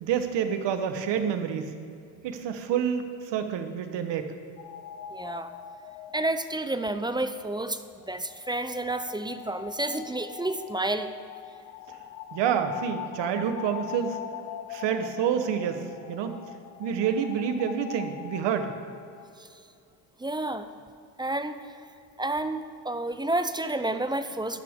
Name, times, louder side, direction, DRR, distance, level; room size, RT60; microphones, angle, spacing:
voice 1, 0.0-1.7 2.2-4.3 12.3-14.2 14.7-16.4 16.8-18.7, right 8 dB, 65° right, 8 dB, 1.3 m, -28 dB
sound 1, 4.6-19.3, left 11 dB, 80° left, 0.8 m, -42 dB
voice 2, 5.1-5.5 6.1-7.8 8.1-11.1 20.2-20.7 21.2-21.7 22.2-24.6, right 2 dB, 10° right, 10 dB, 0.5 m, -30 dB
13.0 x 10.5 x 3.7 m, 2.5 s
supercardioid pair, 85°, 46 cm